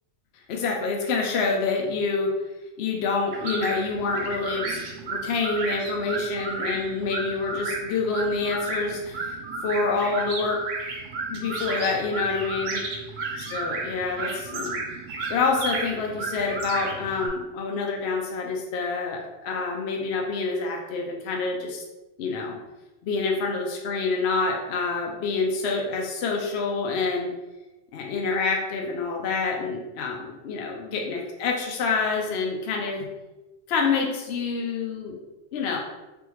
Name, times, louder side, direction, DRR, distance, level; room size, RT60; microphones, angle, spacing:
voice 1, 0.5-2.3 2.8-9.4 9.6-10.6 11.3-12.8 13.5-14.8 15.3-21.8 22.2-22.6 23.0-27.3 27.9-33.0 33.7-35.2 35.5-35.8, left 4 dB, 65° left, 0 dB, 0.8 m, -27 dB
sound 1, 3.3-17.3, right 3 dB, 85° right, 1.0 m, -33 dB
3.5 x 3.4 x 3.0 m, 1.1 s
omnidirectional pair, 1.3 m